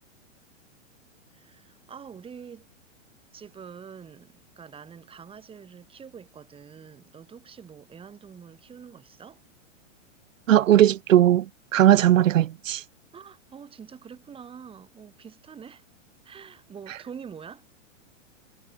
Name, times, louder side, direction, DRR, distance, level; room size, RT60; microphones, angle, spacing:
voice 1, 1.3-2.7 3.3-9.4 13.1-15.8 16.2-17.6, right 7 dB, 15° right, 5.4 m, -45 dB
voice 2, 10.5-12.8, right 12 dB, 80° right, 1.3 m, -18 dB
hypercardioid pair, 150°, 38 cm